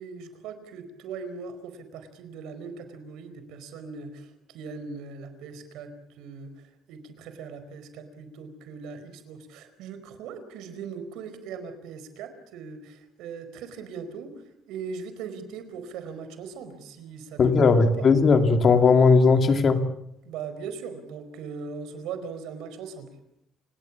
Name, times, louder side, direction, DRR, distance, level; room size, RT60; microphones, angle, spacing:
voice 1, 0.0-18.1 20.2-23.1, right 5 dB, 85° right, 10 dB, 4.6 m, -40 dB
voice 2, 17.4-19.9, left 4 dB, 35° left, 7 dB, 2.4 m, -18 dB
29.0 x 19.0 x 7.4 m, 0.75 s
cardioid pair, 165°, 0 cm